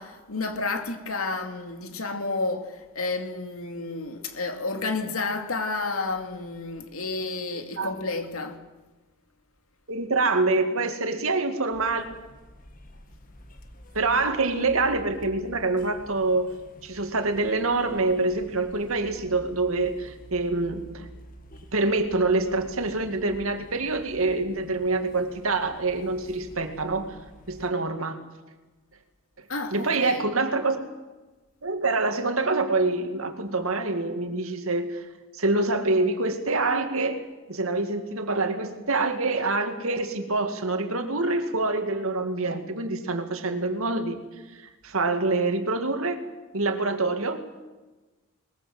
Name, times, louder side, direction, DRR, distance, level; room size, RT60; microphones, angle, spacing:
voice 1, 0.0-8.6 29.5-30.3, left 3 dB, 85° left, 2.7 m, -31 dB
voice 2, 9.9-12.1 13.9-16.5 16.8-21.1 21.7-27.2 27.5-28.2 29.7-30.8 31.6-35.0 35.3-44.2 44.5-46.2 46.5-47.4, right 3 dB, 80° right, 2.3 m, -26 dB
sound 1, 11.7-27.7, equal, 40° left, 1.9 m, -49 dB
21.5 x 21.0 x 7.8 m
head